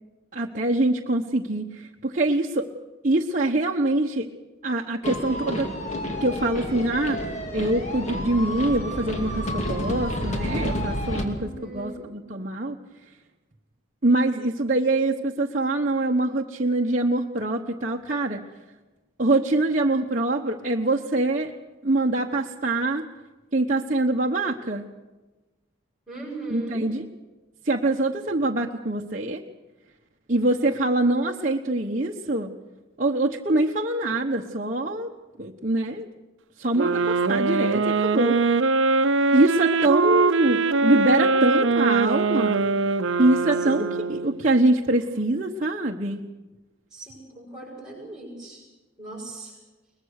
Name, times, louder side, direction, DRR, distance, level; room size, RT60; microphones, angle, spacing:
voice 1, 0.3-2.7 3.0-4.3 4.6-5.7 6.2-12.8 14.0-18.4 19.2-21.5 21.8-23.1 23.5-24.8 26.5-27.1 27.6-29.4 30.3-32.5 33.0-35.1 35.4-36.1 36.6-38.4 39.3-42.6 43.2-43.8 44.1-46.2, right 2 dB, 40° right, -1 dB, 1.1 m, -24 dB
sound 1, 5.0-11.3, equal, 35° left, 2.6 m, -29 dB
voice 2, 11.3-12.1 26.1-26.9 43.6-43.9 46.9-48.6 49.0-49.6, right 2 dB, ahead, -8 dB, 7.7 m, -38 dB
sound 2, 36.7-44.5, right 3 dB, 70° right, 0.8 m, -22 dB
22.5 x 20.5 x 6.6 m, 1.2 s
head